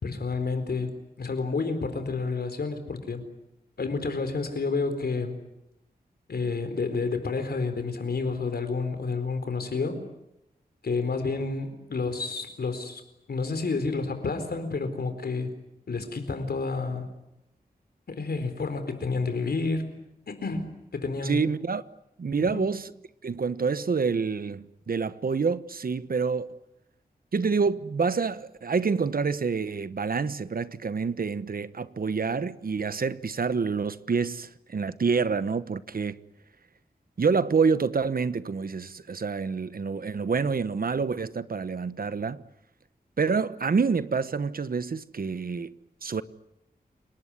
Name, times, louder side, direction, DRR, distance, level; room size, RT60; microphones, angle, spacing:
voice 1, 0.0-3.2 3.8-5.4 6.3-10.0 10.8-13.0 13.3-15.5 15.9-17.1 18.1-19.9 20.3-21.4 22.5-22.6, left 4 dB, 80° left, 4.2 m, -30 dB
voice 2, 21.2-21.8 22.2-22.9 23.2-26.6 27.3-36.2 37.2-42.4 43.2-45.7 46.0-46.2, right 5 dB, 65° right, 1.1 m, -27 dB
29.5 x 19.5 x 9.7 m
wide cardioid pair, 65°, 16 cm